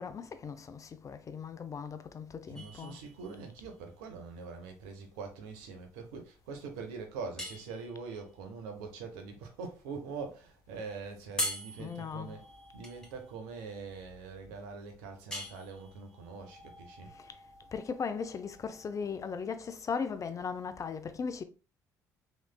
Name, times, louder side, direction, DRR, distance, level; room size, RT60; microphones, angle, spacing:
voice 1, 0.0-3.0 11.8-12.4 17.1-17.4 17.7-21.4, left 6 dB, 40° left, 0.5 m, -38 dB
sound 1, 2.5-19.4, left 1 dB, 10° left, 1.3 m, -44 dB
voice 2, 2.5-12.4 12.7-17.1, right 4 dB, 80° right, 0.7 m, -43 dB
3.1 x 3.1 x 2.2 m
hypercardioid pair, 50°, 9 cm